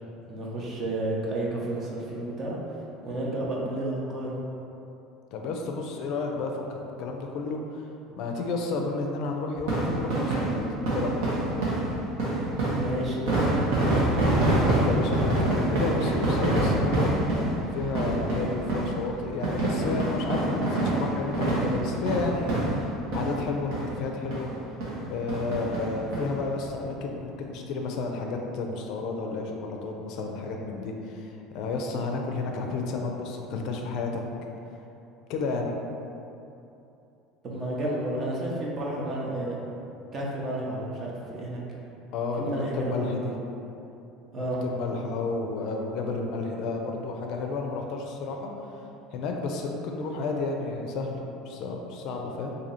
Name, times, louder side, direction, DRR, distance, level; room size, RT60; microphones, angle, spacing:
voice 1, 0.3-2.6 3.0-4.4 12.7-14.1 37.4-39.6 40.1-41.6 42.4-43.4 44.3-44.6, right 1 dB, 30° right, -4 dB, 0.7 m, -31 dB
voice 2, 5.3-7.8 8.1-10.6 10.9-11.1 14.6-17.1 17.7-24.5 25.1-34.2 35.3-35.7 42.1-43.3 44.4-48.5 49.1-51.2 51.5-52.6, left 3 dB, 60° left, 2 dB, 0.4 m, -31 dB
sound 1, 9.6-23.5 23.7-23.9 24.3-24.4 24.8-25.0 25.3-26.2 26.7-26.8 26.9-27.0, right 2 dB, 75° right, 1.0 m, -26 dB
2.9 x 2.7 x 4.0 m, 2.8 s
cardioid pair, 140°, 0 cm